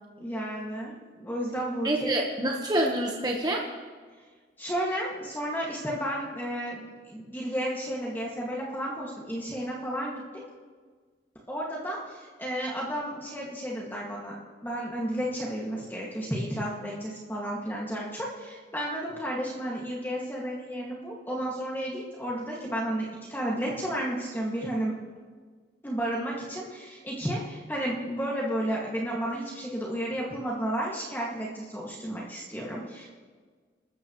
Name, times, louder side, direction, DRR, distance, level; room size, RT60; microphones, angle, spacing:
voice 1, 0.2-2.3 4.6-10.4 11.5-14.4 14.6-25.0 25.8-33.1, equal, 10° left, -4 dB, 2.1 m, -32 dB
voice 2, 1.8-3.6, right 1 dB, 20° right, -1 dB, 1.2 m, -27 dB
28.5 x 13.5 x 3.2 m, 1.5 s
head